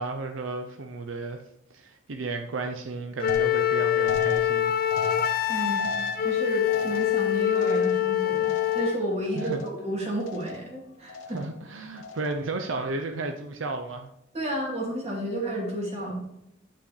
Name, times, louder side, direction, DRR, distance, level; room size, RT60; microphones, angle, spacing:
voice 1, 0.0-1.4 1.7-4.7 9.4-9.7 11.3-14.1, right 3 dB, 80° right, 5 dB, 0.7 m, -33 dB
Wind instrument woodwind instrument, 3.2-9.0, left 10 dB, 45° left, 0.4 m, -25 dB
sound 1, 3.3-9.0 9.3-9.9 10.2-10.8 11.1-11.6 12.0-12.5, left 3 dB, 75° left, 1.0 m, -39 dB
voice 2, 5.5-5.9 6.2-11.4 14.3-16.3, right 1 dB, 35° right, -3 dB, 2.5 m, -31 dB
8.7 x 5.7 x 3.3 m, 0.84 s
head